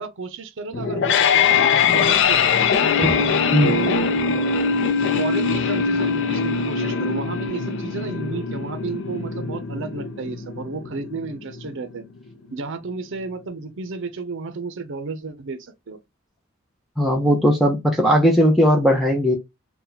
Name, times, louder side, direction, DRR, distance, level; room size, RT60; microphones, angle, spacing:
voice 1, 0.0-2.4 2.8-3.1 3.6-4.6 5.0-12.0 12.5-16.0, right 4 dB, 65° right, 0.6 m, -32 dB
sound 1, 0.7-11.7, left 6 dB, 60° left, 0.4 m, -22 dB
voice 2, 17.0-19.4, equal, ahead, 0.5 m, -18 dB
2.8 x 2.2 x 3.9 m
head